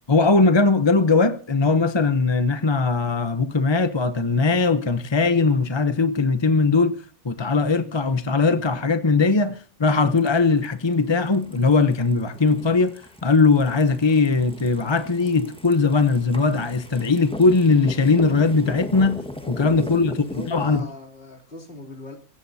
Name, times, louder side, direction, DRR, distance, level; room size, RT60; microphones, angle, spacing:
voice 1, 0.1-7.0 7.2-12.9 13.2-19.2 19.5-20.9, left 4 dB, 25° left, 0.7 m, -20 dB
sound 1, 10.1-20.8, equal, 5° left, 1.4 m, -39 dB
voice 2, 19.4-22.2, left 2 dB, 40° left, 3.4 m, -39 dB
23.0 x 17.5 x 2.8 m
omnidirectional pair, 1.5 m